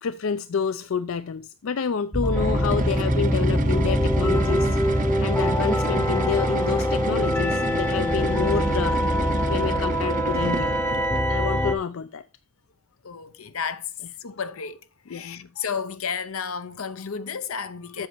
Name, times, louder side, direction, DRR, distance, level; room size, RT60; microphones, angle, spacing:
voice 1, 0.0-9.0 9.5-10.8 11.3-12.2 15.1-15.5 18.0-18.1, left 6 dB, 70° left, 0.4 m, -28 dB
sound 1, 2.1-11.7, equal, 10° left, 0.7 m, -24 dB
sound 2, 2.2-11.4, right 3 dB, 40° right, 0.6 m, -30 dB
voice 2, 13.0-13.9 14.2-14.8 15.1-18.1, left 6 dB, 85° left, 0.8 m, -32 dB
8.0 x 6.6 x 4.4 m
head